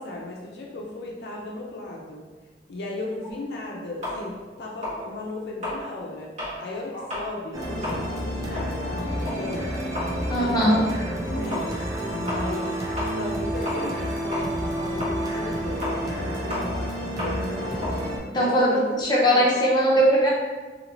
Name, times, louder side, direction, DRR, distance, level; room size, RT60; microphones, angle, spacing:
voice 1, 0.0-2.2 2.7-6.3 6.6-9.9 10.4-10.9 11.3-11.8 12.1-18.9 19.3-19.4, left 2 dB, 65° left, -2 dB, 0.4 m, -36 dB
sound 1, 4.0-6.6 7.0-7.3 7.7-14.1 14.3-19.1, left 1 dB, 45° right, 1.5 m, -34 dB
sound 2, 7.5-18.2, equal, 20° right, 0.6 m, -30 dB
voice 2, 10.3-10.9 18.3-20.3, equal, 25° left, -4 dB, 0.7 m, -20 dB
2.7 x 2.7 x 2.9 m, 1.3 s
head